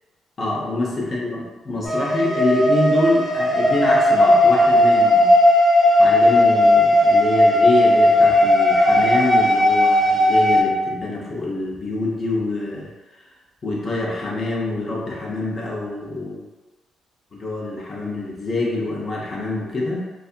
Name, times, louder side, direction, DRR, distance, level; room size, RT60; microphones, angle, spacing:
voice 1, 0.4-5.4 6.0-12.9 13.2-13.3 13.6-16.4 17.3-20.0, left 2 dB, 40° left, -4 dB, 0.6 m, -25 dB
sound 1, 1.8-10.6, left 1 dB, 5° right, 0.8 m, -16 dB
2.6 x 2.4 x 2.4 m, 1.2 s
cardioid pair, 90°, 0 cm